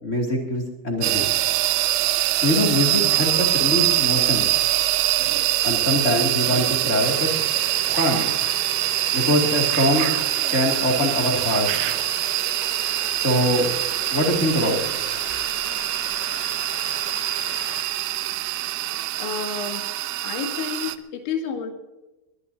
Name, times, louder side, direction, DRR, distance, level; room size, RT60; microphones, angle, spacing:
voice 1, 0.0-1.3 2.4-4.4 5.6-7.3 7.9-8.2 9.1-10.1 10.5-11.7 13.2-13.7 14.1-14.8, left 1 dB, 30° left, 0 dB, 1.5 m, -23 dB
sound 1, 1.0-21.0, right 15 dB, 85° right, 3.1 m, -24 dB
sound 2, 5.0-5.5 6.3-6.9 7.9-12.3, right 10 dB, 70° right, 2.9 m, -35 dB
sound 3, 7.0-17.8, left 7 dB, 65° left, 3.3 m, -39 dB
voice 2, 18.9-19.8 20.2-21.7, left 6 dB, 90° left, 3 dB, 4.4 m, -30 dB
21.5 x 20.0 x 2.7 m, 1.1 s
omnidirectional pair, 5.2 m